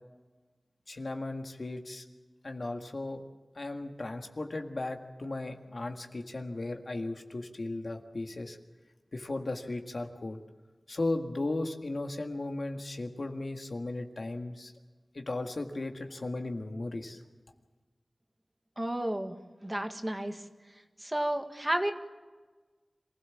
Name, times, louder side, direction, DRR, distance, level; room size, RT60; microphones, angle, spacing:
voice 1, 0.9-2.0 2.4-3.2 3.6-8.6 9.1-10.4 10.9-14.7 15.1-17.2, left 2 dB, 65° left, 4 dB, 1.9 m, -36 dB
voice 2, 18.8-19.4 19.6-20.4 21.0-21.9, right 1 dB, 20° right, 6 dB, 1.8 m, -31 dB
27.0 x 16.0 x 7.3 m, 1.3 s
wide cardioid pair, 70°, 0 cm